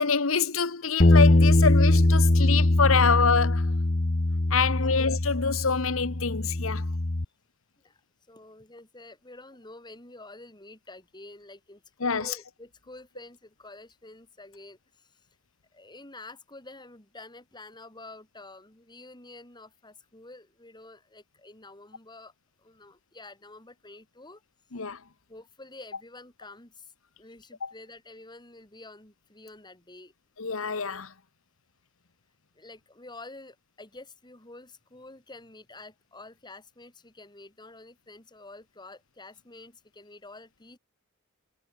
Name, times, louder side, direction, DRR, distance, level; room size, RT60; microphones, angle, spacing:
voice 1, 0.0-3.7 4.5-6.8 12.0-12.3 24.7-25.0 27.6-27.7 30.4-31.1, left 5 dB, 80° left, 1.3 m, -26 dB
Bass guitar, 1.0-7.2, left 2 dB, 45° left, 1.1 m, -22 dB
voice 2, 8.3-15.1 15.7-22.3 22.6-24.4 25.3-26.9 27.2-30.1 32.6-40.8, left 2 dB, 20° left, 4.1 m, -48 dB
head